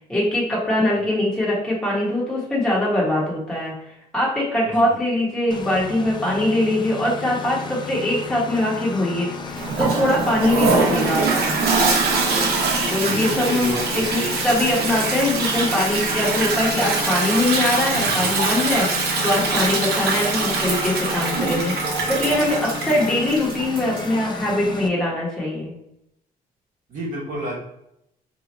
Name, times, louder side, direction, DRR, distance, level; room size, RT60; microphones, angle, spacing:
voice 1, 0.1-3.7 4.1-11.6 12.9-25.7, left 1 dB, 5° left, -6 dB, 1.2 m, -22 dB
voice 2, 4.6-5.0 13.0-14.3 17.9-18.2 26.9-27.6, right 1 dB, 55° right, -6 dB, 1.1 m, -31 dB
Engine, 5.5-24.9, left 4 dB, 30° left, 0.4 m, -33 dB
Toilet flush, 9.6-24.2, right 4 dB, 75° right, 0.8 m, -23 dB
2.9 x 2.3 x 4.1 m, 0.81 s
cardioid pair, 110°, 16 cm